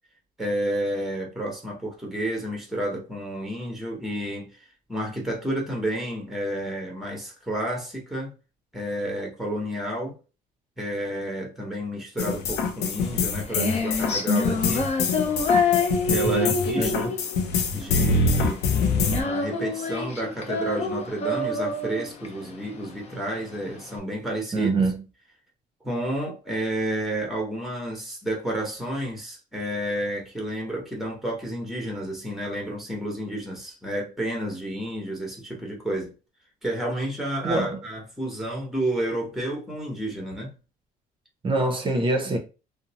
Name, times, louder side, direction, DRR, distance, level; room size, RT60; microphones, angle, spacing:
voice 1, 0.4-4.5 4.9-8.3 8.7-10.2 10.8-14.9 16.1-17.2 17.7-24.7 25.8-36.1 36.6-40.5, right 1 dB, ahead, 1.0 m, -30 dB
sound 1, 12.2-19.2, left 4 dB, 85° left, 0.5 m, -25 dB
Female singing, 13.0-24.0, left 3 dB, 40° left, 0.6 m, -27 dB
voice 2, 16.2-17.1 24.5-25.0 37.4-37.8 41.4-42.4, right 2 dB, 30° right, 0.6 m, -25 dB
2.5 x 2.0 x 2.8 m
cardioid pair, 110°, 17 cm